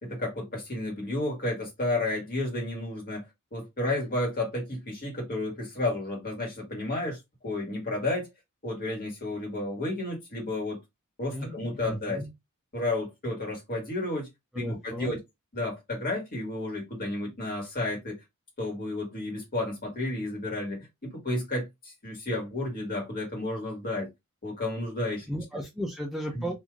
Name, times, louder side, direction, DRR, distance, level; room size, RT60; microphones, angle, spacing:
voice 1, 0.0-3.2 3.5-8.3 8.6-10.8 11.2-12.2 12.7-14.3 14.5-15.2 15.5-18.2 18.6-24.1 24.4-25.3 26.3-26.5, left 2 dB, 40° left, 1.5 m, -32 dB
voice 2, 11.3-12.3 14.5-15.1 25.3-26.5, equal, ahead, 0.4 m, -34 dB
3.1 x 2.6 x 2.3 m
head